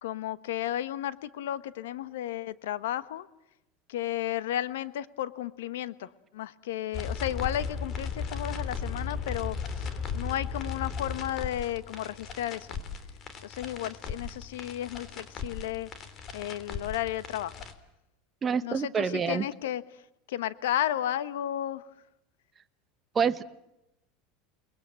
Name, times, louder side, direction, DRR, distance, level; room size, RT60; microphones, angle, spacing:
voice 1, 0.0-3.3 3.9-9.9 10.1-12.7 13.4-15.9 16.3-17.5 18.6-19.8 20.3-21.8, left 12 dB, 90° left, 15 dB, 1.1 m, -33 dB
sound 1, 6.9-17.7, left 5 dB, 40° left, 3.1 m, -36 dB
voice 2, 18.4-19.4 23.1-23.4, right 6 dB, 25° right, 10 dB, 1.1 m, -27 dB
30.0 x 21.0 x 7.6 m, 0.84 s
supercardioid pair, 130°, 0 cm